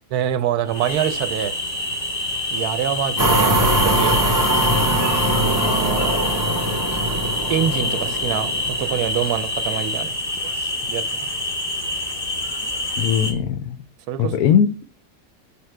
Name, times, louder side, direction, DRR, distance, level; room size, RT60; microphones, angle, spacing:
voice 1, 0.1-1.5 2.5-4.1 5.3-6.7 7.5-11.3 14.1-14.4, right 9 dB, 85° right, 1.2 m, -26 dB
sound 1, 0.7-13.3, left 1 dB, 25° left, 1.8 m, -26 dB
sound 2, 3.2-9.4, right 1 dB, 20° right, 0.5 m, -22 dB
voice 2, 13.0-13.8 14.2-14.8, left 8 dB, 75° left, 1.1 m, -19 dB
5.9 x 4.9 x 3.2 m
omnidirectional pair, 1.6 m